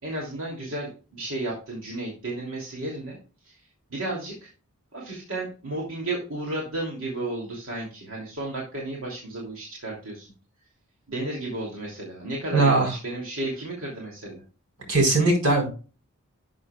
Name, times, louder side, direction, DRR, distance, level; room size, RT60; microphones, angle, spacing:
voice 1, 0.0-3.2 3.4-3.6 3.9-4.5 4.9-10.3 11.1-14.4, right 2 dB, 65° right, -2 dB, 2.8 m, -33 dB
voice 2, 12.5-12.9 14.9-15.7, right 2 dB, 90° right, 2 dB, 4.5 m, -20 dB
12.0 x 7.4 x 2.4 m, 0.35 s
head